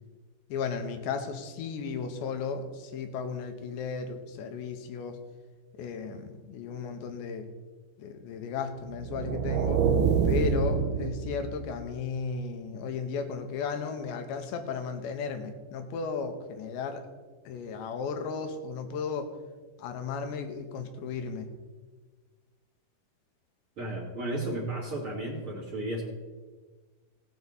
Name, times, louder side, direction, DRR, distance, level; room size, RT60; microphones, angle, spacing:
voice 1, 0.5-5.2 5.7-7.5 8.0-9.8 10.3-17.0 17.5-19.3 19.8-21.5, left 5 dB, 85° left, 6 dB, 3.3 m, -35 dB
sound 1, 8.9-11.9, right 6 dB, 80° right, 2.5 m, -26 dB
voice 2, 23.8-26.0, right 1 dB, 35° right, -5 dB, 2.9 m, -33 dB
18.0 x 8.3 x 4.1 m, 1.4 s
omnidirectional pair, 5.0 m